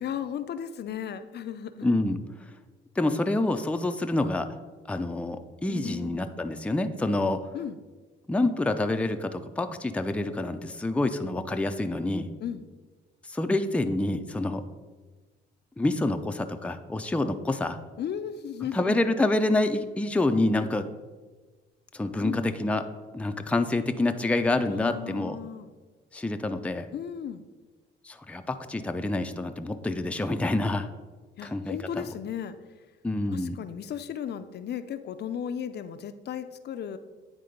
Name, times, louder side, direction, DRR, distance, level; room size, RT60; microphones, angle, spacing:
voice 1, 0.0-1.9 5.7-6.3 7.5-7.8 12.4-12.7 18.0-19.0 22.2-22.4 24.7-25.7 26.9-27.4 31.4-32.6 33.3-37.0, left 8 dB, 55° left, 10 dB, 0.5 m, -35 dB
voice 2, 1.8-2.2 3.0-4.5 4.9-7.4 8.3-12.3 13.2-14.6 15.8-17.8 18.7-20.9 21.9-22.8 23.1-25.4 26.1-26.9 28.0-30.9 31.4-31.8 33.0-33.6, left 2 dB, 5° left, 7 dB, 0.4 m, -27 dB
9.3 x 3.7 x 5.1 m, 1.3 s
cardioid pair, 90°, 20 cm